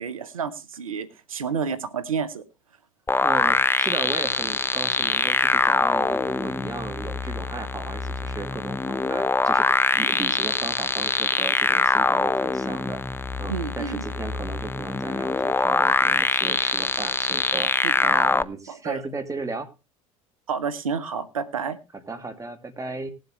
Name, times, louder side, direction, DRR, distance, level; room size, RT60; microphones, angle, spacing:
voice 1, 0.0-2.4 13.5-14.0 17.8-18.2 18.7-19.0 20.5-21.8, right 6 dB, 90° right, 15 dB, 0.9 m, -30 dB
sound 1, 3.1-18.4, left 3 dB, 15° left, 0.6 m, -23 dB
voice 2, 3.2-9.7 9.9-13.0 13.4-17.7 18.0-19.7 22.1-23.1, right 3 dB, 20° right, 6 dB, 2.3 m, -35 dB
19.0 x 7.7 x 3.1 m, 0.29 s
hypercardioid pair, 75°, 17 cm